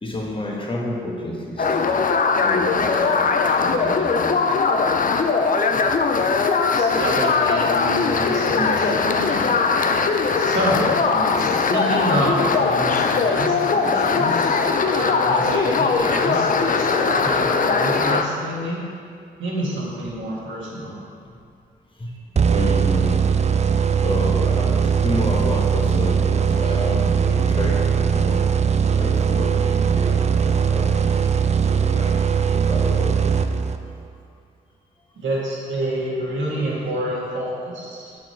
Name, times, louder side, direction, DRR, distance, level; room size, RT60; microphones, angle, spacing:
voice 1, 0.0-2.0 2.4-5.0 22.0-23.2 24.0-28.4 29.0-32.2 32.5-33.5, left 1 dB, 25° left, -2 dB, 1.5 m, -30 dB
sound 1, 1.6-18.2, left 4 dB, 40° left, 0.6 m, -20 dB
voice 2, 6.7-9.6 10.3-18.8 19.4-21.0 35.1-38.1, right 1 dB, 70° right, -5 dB, 1.9 m, -27 dB
sound 2, 22.4-34.0, right 6 dB, 35° right, 0.4 m, -20 dB
6.1 x 5.9 x 4.6 m, 2.3 s
hypercardioid pair, 40°, 21 cm